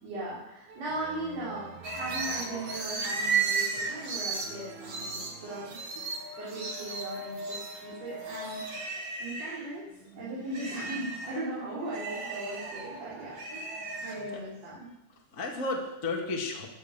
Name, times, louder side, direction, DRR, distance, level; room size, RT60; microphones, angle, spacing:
voice 1, 0.0-5.8 6.4-8.6 9.2-9.9 10.2-14.9, right 1 dB, 55° right, -8 dB, 5.0 m, -38 dB
sound 1, 0.7-5.7, right 6 dB, 75° right, 3.0 m, -49 dB
sound 2, 1.8-9.7 10.1-14.4, right 4 dB, 40° right, 2.8 m, -35 dB
voice 2, 10.0-10.3 10.8-10.9 14.3-14.4 15.3-16.7, left 3 dB, 30° left, -1 dB, 2.0 m, -34 dB
17.0 x 11.0 x 6.8 m, 0.97 s
omnidirectional pair, 3.5 m